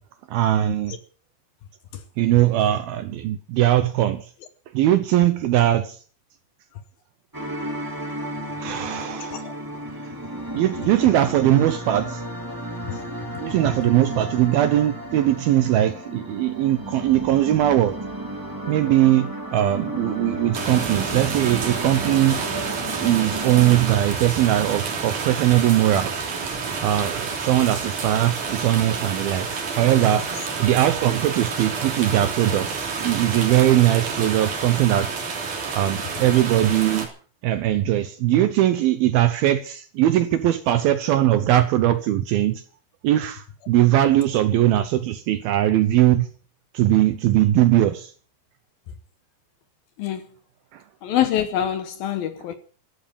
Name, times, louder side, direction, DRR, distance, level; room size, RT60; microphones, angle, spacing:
voice 1, 0.3-1.0 2.2-4.2 4.7-6.0 8.6-9.5 10.5-12.2 13.4-18.0 18.7-22.4 23.0-26.1 26.8-30.3 30.6-35.1 35.7-37.1 37.4-42.6 43.0-46.3 46.7-48.1 50.7-50.8, right 13 dB, 75° right, 2.3 m, -20 dB
sound 1, 7.3-23.8, right 1 dB, 30° right, 0.3 m, -33 dB
sound 2, 20.5-37.1, right 5 dB, 45° right, 4.2 m, -29 dB
voice 2, 51.0-52.6, left 10 dB, 70° left, 2.4 m, -24 dB
14.5 x 11.5 x 7.2 m
omnidirectional pair, 5.2 m